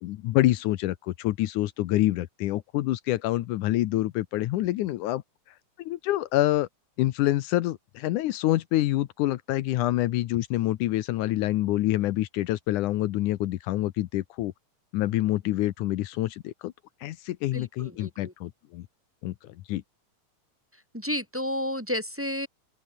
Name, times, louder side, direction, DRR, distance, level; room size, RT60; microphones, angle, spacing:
voice 1, 0.0-5.2 5.8-6.7 7.0-14.5 14.9-16.7 17.0-18.9 19.2-19.8, left 15 dB, 80° left, 2.3 m, -27 dB
voice 2, 17.5-18.3 20.7-22.5, left 1 dB, 5° right, 3.8 m, -32 dB
open air
omnidirectional pair, 3.5 m